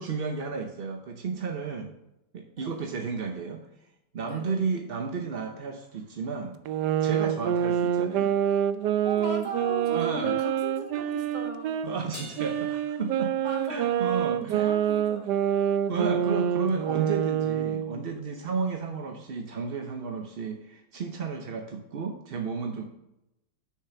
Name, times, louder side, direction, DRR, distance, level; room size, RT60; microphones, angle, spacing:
voice 1, 0.0-1.9 2.3-3.7 4.1-6.6 7.0-8.3 9.9-10.3 11.8-13.4 13.7-14.7 15.9-22.8, right 5 dB, 50° right, 3 dB, 0.7 m, -32 dB
voice 2, 2.6-2.9 4.3-4.6 9.0-11.7 13.4-15.7, equal, 25° right, 0 dB, 1.8 m, -38 dB
sound 1, 6.7-11.9 12.4-18.0, right 9 dB, 75° right, 1.1 m, -27 dB
Crash cymbal, 12.1-13.9, equal, 15° left, 2.3 m, -46 dB
6.6 x 6.5 x 5.7 m, 0.89 s
omnidirectional pair, 1.9 m